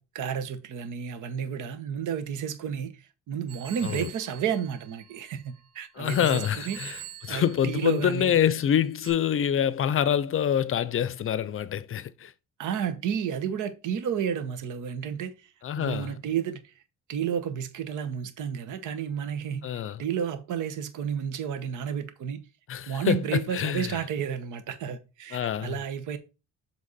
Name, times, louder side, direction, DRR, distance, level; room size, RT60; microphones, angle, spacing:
voice 1, 0.0-6.8 7.3-8.4 12.6-16.8 17.1-19.7 20.0-22.4 22.9-26.2, right 8 dB, 80° right, 1.1 m, -31 dB
Telephone, 3.5-5.6 6.0-8.4 9.0-9.1, right 10 dB, 20° right, 4.1 m, -44 dB
voice 2, 6.0-7.0 7.2-12.3 15.6-16.1 19.6-20.0 22.7-24.0 25.3-25.8, left 9 dB, 45° left, 0.5 m, -26 dB
7.5 x 3.4 x 4.1 m
cardioid pair, 90°, 30 cm